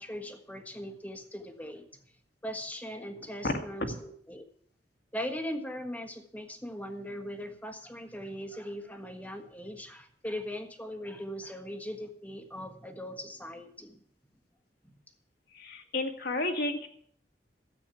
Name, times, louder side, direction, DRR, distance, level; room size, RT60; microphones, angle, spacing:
voice 1, 0.0-2.1 2.4-4.4 5.1-14.0 14.8-14.9, equal, 10° left, 6 dB, 1.4 m, -40 dB
voice 2, 15.5-16.9, left 2 dB, 60° left, 3 dB, 1.9 m, -31 dB
13.5 x 8.4 x 7.0 m, 0.62 s
head